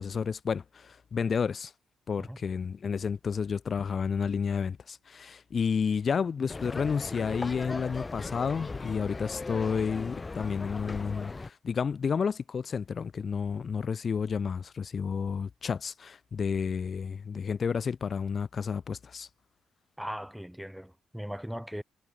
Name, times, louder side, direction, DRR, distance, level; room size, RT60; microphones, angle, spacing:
voice 1, 0.0-1.7 2.1-19.3, left 6 dB, 45° left, 1.0 m, -31 dB
sound 1, 6.5-11.5, left 3 dB, 25° left, 1.4 m, -38 dB
voice 2, 20.0-21.8, equal, ahead, 1.1 m, -39 dB
cardioid pair, 90°, 0 cm